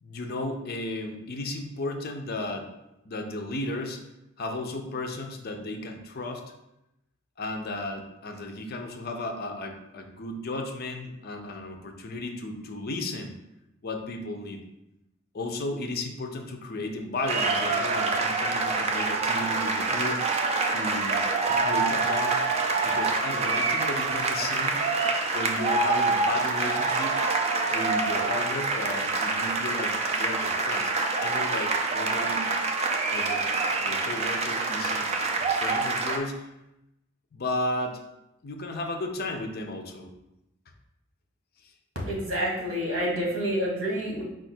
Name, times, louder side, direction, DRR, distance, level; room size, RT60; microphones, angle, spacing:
voice 1, 0.0-2.7 3.0-4.0 4.4-6.4 7.4-13.3 13.8-14.6 15.3-20.3 20.7-22.4 22.8-24.8 25.3-27.2 27.7-32.5 33.1-33.5 33.8-35.1 35.3-36.5 37.3-38.0 38.4-40.1 42.0-42.1, left 2 dB, 50° left, 4 dB, 0.5 m, -34 dB
sound 1, 17.3-36.2, right 3 dB, 30° right, 0.4 m, -26 dB
voice 2, 42.0-44.2, equal, 75° right, -2 dB, 1.4 m, -28 dB
4.7 x 2.5 x 4.3 m, 0.88 s
head